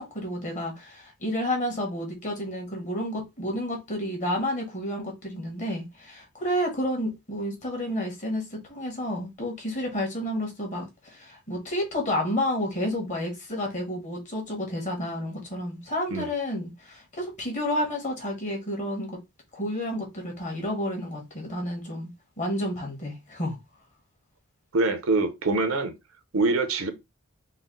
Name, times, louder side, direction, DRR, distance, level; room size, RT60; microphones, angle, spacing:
voice 1, 0.0-19.2 19.5-22.1 22.4-23.6, left 1 dB, 35° left, 1.4 m, -30 dB
voice 2, 24.7-25.9 26.3-26.9, right 3 dB, 75° right, 0.7 m, -24 dB
4.0 x 2.1 x 3.8 m
head